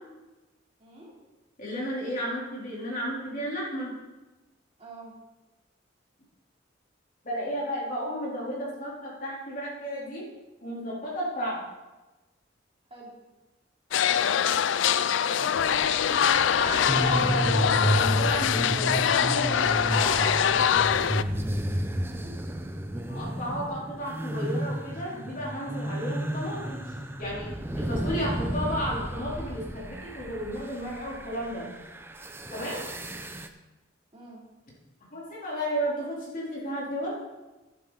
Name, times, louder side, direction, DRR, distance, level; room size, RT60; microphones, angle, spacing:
voice 1, 0.8-1.1 4.8-5.2 12.9-13.2 15.2-15.8 22.0-22.4 32.6-32.9 34.1-34.4, right 2 dB, 35° right, -5 dB, 3.3 m, -46 dB
voice 2, 1.6-3.9 7.2-10.3 10.6-11.6 16.6-20.4 23.1-31.7 32.5-32.8 35.1-37.2, equal, 45° left, -5 dB, 3.5 m, -33 dB
sound 1, 13.9-21.2, left 8 dB, 70° left, 0.4 m, -24 dB
sound 2, 15.6-33.5, right 1 dB, 10° right, 0.7 m, -32 dB
11.0 x 10.5 x 4.0 m, 1.1 s
head